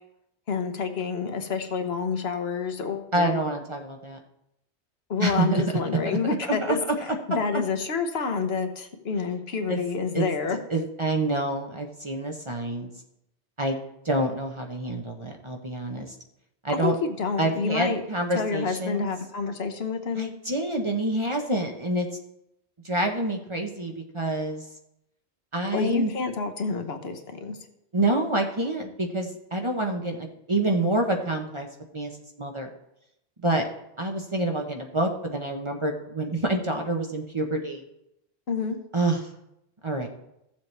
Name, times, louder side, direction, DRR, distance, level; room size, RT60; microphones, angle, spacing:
voice 1, 0.5-3.4 5.1-6.8 7.3-10.6 16.8-18.0 18.3-20.3 25.7-27.6 38.5-38.8, left 5 dB, 65° left, 7 dB, 1.1 m, -28 dB
voice 2, 3.1-4.2 5.2-5.6 6.4-6.8 7.5-7.6 9.7-9.8 10.1-10.2 10.7-12.9 13.6-16.1 16.6-17.0 17.4-19.1 20.2-22.1 22.8-24.6 25.5-26.1 27.9-31.7 31.9-32.1 32.4-32.7 33.4-33.7 34.0-37.8 38.9-39.3 39.8-40.1, right 1 dB, 30° right, 2 dB, 0.8 m, -27 dB
15.0 x 7.3 x 3.3 m, 0.83 s
omnidirectional pair, 1.1 m